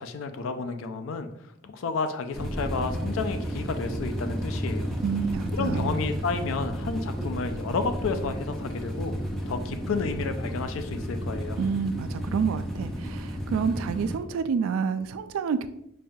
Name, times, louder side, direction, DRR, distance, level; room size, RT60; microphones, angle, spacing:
voice 1, 0.0-4.9 5.5-9.1 9.5-11.6, left 4 dB, 75° left, 8 dB, 0.4 m, -31 dB
sound 1, 2.3-14.2, equal, ahead, 0.5 m, -32 dB
voice 2, 5.0-5.9 11.6-15.7, right 6 dB, 85° right, 11 dB, 0.3 m, -28 dB
5.3 x 2.3 x 2.6 m, 0.78 s
head